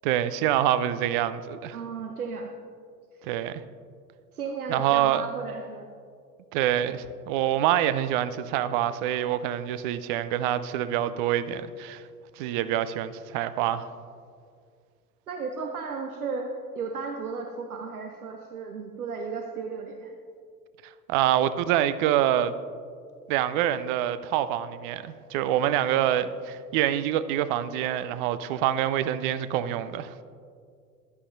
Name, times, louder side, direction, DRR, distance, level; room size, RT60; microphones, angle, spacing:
voice 1, 0.0-1.8 3.2-3.6 4.7-5.3 6.5-12.0 12.4-13.9 21.1-22.5 23.3-30.1, right 11 dB, 35° right, 14 dB, 0.4 m, -26 dB
voice 2, 1.7-2.5 3.1-3.3 4.3-5.9 15.3-16.5 16.7-20.2, right 5 dB, 75° right, 4 dB, 0.8 m, -34 dB
14.0 x 11.5 x 2.6 m, 2.2 s
figure-of-eight pair, 75°, 44 cm